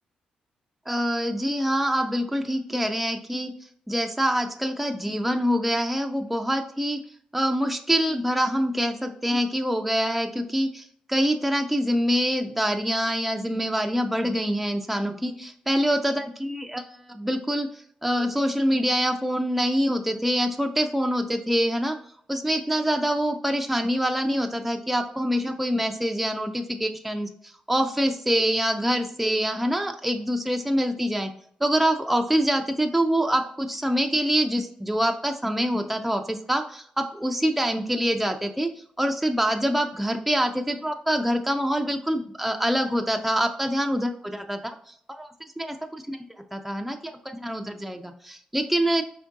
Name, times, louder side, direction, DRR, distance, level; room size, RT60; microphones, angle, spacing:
voice 1, 0.9-3.5 3.9-7.0 7.3-17.7 18.0-22.0 22.3-31.3 31.6-38.7 39.0-45.3 45.6-46.2 46.5-49.0, equal, 5° right, 4 dB, 0.4 m, -25 dB
4.4 x 3.5 x 2.6 m, 0.63 s
cardioid pair, 75°, 3 cm